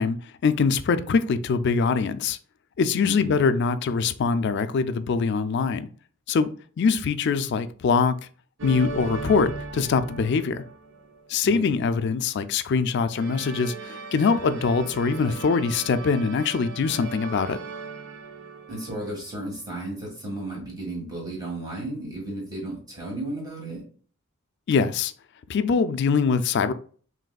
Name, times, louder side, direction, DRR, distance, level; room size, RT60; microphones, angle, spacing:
voice 1, 0.0-2.4 2.8-5.9 6.3-6.5 6.8-8.1 8.6-10.6 11.3-17.6 24.7-25.1 25.5-26.7, left 5 dB, 55° left, 0.4 m, -23 dB
voice 2, 3.0-3.4 11.4-11.7 18.7-23.8, right 1 dB, 20° right, 1.8 m, -34 dB
sound 1, 8.6-11.2 13.1-19.4, right 4 dB, 60° right, 0.6 m, -38 dB
5.1 x 3.2 x 2.3 m
head